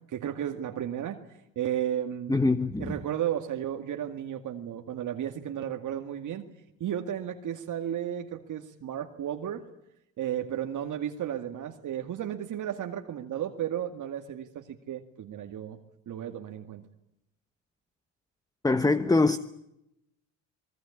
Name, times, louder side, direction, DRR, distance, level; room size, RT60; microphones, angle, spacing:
voice 1, 0.1-1.2 1.6-2.4 2.8-6.5 6.8-9.6 10.2-15.8 16.1-16.9, right 10 dB, 55° right, 2.1 m, -33 dB
voice 2, 2.3-2.9 18.6-19.4, left 3 dB, 10° left, 1.1 m, -23 dB
24.0 x 22.5 x 8.6 m
supercardioid pair, 80°, 36 cm